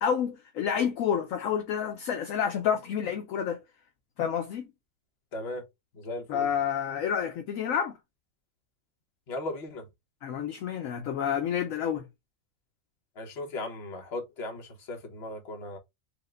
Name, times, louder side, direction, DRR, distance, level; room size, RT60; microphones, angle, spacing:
voice 1, 0.0-3.6 4.2-4.7 6.3-8.0 10.2-12.1, left 8 dB, 65° left, 1.0 m, -29 dB
voice 2, 5.3-5.6 5.9-6.5 9.3-9.9 13.2-15.8, left 2 dB, 45° left, 1.2 m, -37 dB
4.8 x 2.2 x 3.6 m
omnidirectional pair, 1.6 m